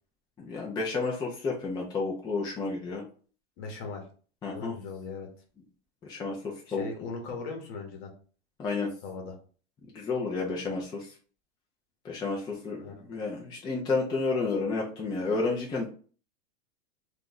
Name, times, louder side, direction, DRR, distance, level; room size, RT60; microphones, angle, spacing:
voice 1, 0.4-3.0 4.4-4.7 6.0-6.9 8.6-8.9 9.9-11.1 12.0-15.9, left 4 dB, 15° left, -2 dB, 0.4 m, -31 dB
voice 2, 3.6-4.0 4.5-5.3 6.7-8.1 9.0-9.4 10.4-10.7 12.8-13.0, left 4 dB, 50° left, 3 dB, 1.0 m, -39 dB
2.5 x 2.2 x 3.9 m, 0.41 s
hypercardioid pair, 130°, 32 cm